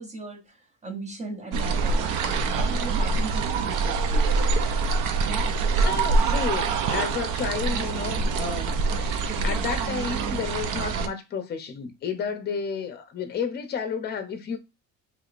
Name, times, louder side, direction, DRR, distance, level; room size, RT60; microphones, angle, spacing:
voice 1, 0.0-4.3, right 3 dB, 20° right, 0.7 m, -38 dB
sound 1, 1.5-11.1, right 4 dB, 75° right, 0.6 m, -25 dB
voice 2, 5.7-14.6, left 6 dB, 30° left, 0.7 m, -32 dB
4.8 x 3.1 x 2.5 m
cardioid pair, 160°, 32 cm